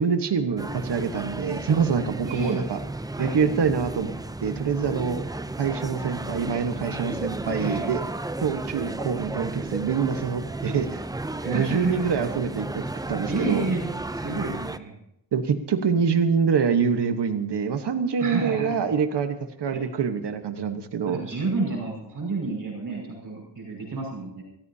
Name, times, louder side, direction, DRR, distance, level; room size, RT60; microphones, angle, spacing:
voice 1, 0.0-2.8 3.2-4.1 4.4-5.3 5.6-8.0 8.4-11.0 11.4-12.7 13.1-13.6 15.3-21.2, right 6 dB, 70° right, 7 dB, 1.3 m, -25 dB
sound 1, 0.6-14.8, right 2 dB, 10° right, 0.5 m, -33 dB
voice 2, 2.2-2.6 3.1-3.5 7.5-8.0 11.4-12.3 13.3-15.0 18.2-18.8 19.7-19.8 21.0-24.4, right 3 dB, 50° right, -1 dB, 5.7 m, -30 dB
26.5 x 14.5 x 2.8 m, 0.80 s
wide cardioid pair, 160°, 42 cm